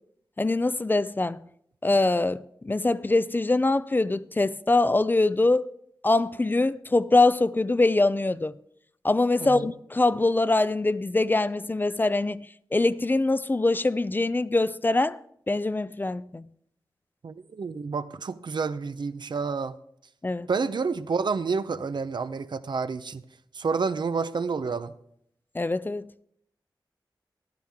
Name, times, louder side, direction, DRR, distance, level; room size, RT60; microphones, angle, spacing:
voice 1, 0.4-1.4 1.8-5.6 6.0-8.5 9.0-12.5 12.7-15.2 15.5-16.5 20.2-20.5 25.5-26.1, left 2 dB, 25° left, 0.4 m, -23 dB
voice 2, 9.4-9.7 17.2-19.7 20.5-23.2 23.5-24.9, right 5 dB, 70° right, 0.6 m, -29 dB
14.5 x 12.0 x 3.6 m
wide cardioid pair, 85°, 8 cm